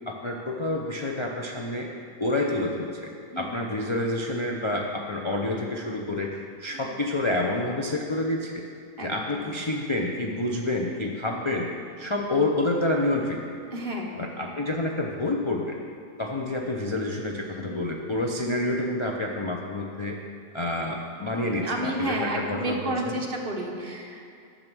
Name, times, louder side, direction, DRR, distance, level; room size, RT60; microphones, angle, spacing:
voice 1, 0.0-1.9 2.2-3.1 3.4-8.6 9.0-11.7 12.0-13.4 14.2-15.8 16.2-20.2 20.5-22.8 23.1-23.2, left 2 dB, 35° left, 0 dB, 0.5 m, -28 dB
voice 2, 2.4-2.7 3.3-3.6 6.7-7.0 9.0-9.6 10.8-11.2 12.0-12.1 13.7-14.1 17.6-17.9 21.2-24.3, right 1 dB, 45° right, 0 dB, 1.3 m, -32 dB
11.0 x 6.8 x 6.1 m, 2.3 s
omnidirectional pair, 1.4 m